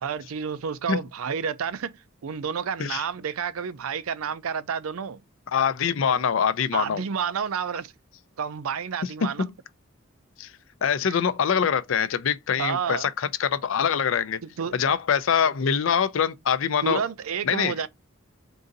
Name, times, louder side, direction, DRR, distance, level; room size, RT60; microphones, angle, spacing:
voice 1, 0.0-1.9 2.2-5.2 6.7-7.9 8.4-9.4 12.6-13.1 14.4-14.8 16.8-17.9, right 7 dB, 90° right, 0.5 m, -30 dB
voice 2, 5.5-7.0 9.2-9.5 10.4-10.5 10.8-14.4 14.7-17.0 17.4-17.7, left 7 dB, 65° left, 0.4 m, -24 dB
3.8 x 2.6 x 3.9 m
head